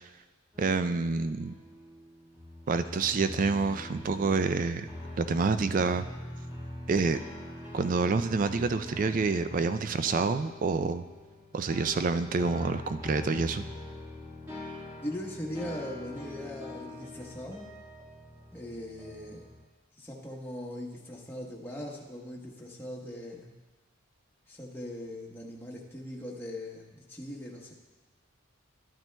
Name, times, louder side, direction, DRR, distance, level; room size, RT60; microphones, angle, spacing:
sound 1, 0.5-19.6, left 1 dB, 15° right, 1.9 m, -43 dB
voice 1, 0.6-1.5 2.7-4.9 5.2-6.1 6.9-7.2 7.7-11.0 11.5-13.6, right 4 dB, 40° right, 11 dB, 0.3 m, -27 dB
voice 2, 15.0-17.7 18.5-19.5 20.0-23.5 24.5-27.7, left 1 dB, 10° left, -2 dB, 1.0 m, -40 dB
12.5 x 8.9 x 2.2 m, 1.2 s
head